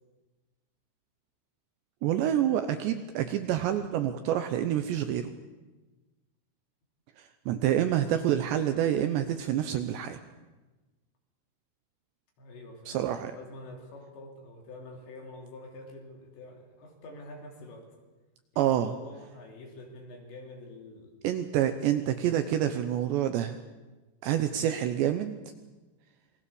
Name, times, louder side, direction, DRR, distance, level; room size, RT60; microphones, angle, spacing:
voice 1, 2.0-5.3 7.2-10.2 12.9-13.3 18.6-18.9 21.2-23.6 24.2-25.4, right 11 dB, 75° right, 8 dB, 2.7 m, -27 dB
voice 2, 12.4-18.0 18.5-21.2, left 2 dB, 60° left, 2 dB, 5.3 m, -47 dB
27.0 x 21.0 x 7.0 m, 1.2 s
omnidirectional pair, 5.8 m